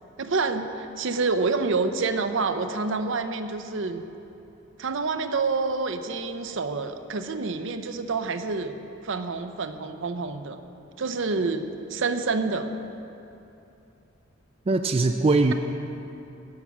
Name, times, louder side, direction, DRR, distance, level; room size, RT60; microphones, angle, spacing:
voice 1, 0.2-4.0 4.8-8.7 9.0-10.6 11.0-11.6 11.9-12.7, right 4 dB, 70° right, 8 dB, 0.7 m, -27 dB
voice 2, 14.7-15.5, right 3 dB, 30° right, 6 dB, 0.4 m, -21 dB
17.0 x 6.1 x 6.1 m, 2.9 s
head